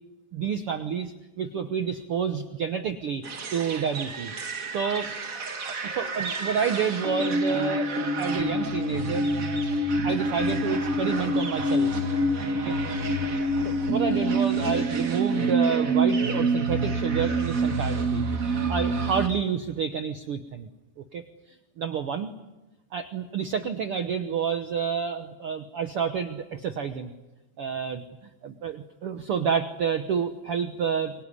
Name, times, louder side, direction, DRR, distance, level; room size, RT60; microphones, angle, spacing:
voice 1, 0.3-3.2 3.5-4.3 4.7-5.1 5.8-9.3 10.0-11.9 12.6-12.7 13.6-18.2 18.7-20.7 21.1-22.3 22.9-27.1 27.6-28.0 28.4-31.1, right 7 dB, 90° right, 9 dB, 1.2 m, -29 dB
sound 1, 3.2-19.3, right 2 dB, 45° right, 1.1 m, -27 dB
24.0 x 23.5 x 9.8 m, 1.1 s
omnidirectional pair, 4.2 m